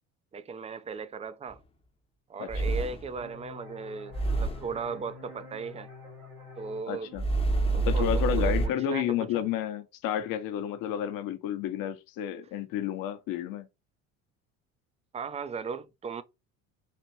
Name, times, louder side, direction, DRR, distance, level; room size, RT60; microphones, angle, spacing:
voice 1, 0.3-1.6 2.3-5.9 6.6-7.1 7.7-9.4 15.1-16.2, right 5 dB, 15° right, 0.4 m, -37 dB
sound 1, 1.5-1.6 2.5-3.2 4.1-4.8 7.2-8.7, right 3 dB, 15° left, 0.7 m, -27 dB
voice 2, 2.4-2.7 6.9-7.2 7.8-13.7, left 10 dB, 60° left, 0.8 m, -31 dB
sound 2, 3.2-8.6, left 3 dB, 85° right, 2.3 m, -49 dB
4.2 x 2.5 x 3.1 m
hypercardioid pair, 70°, 39 cm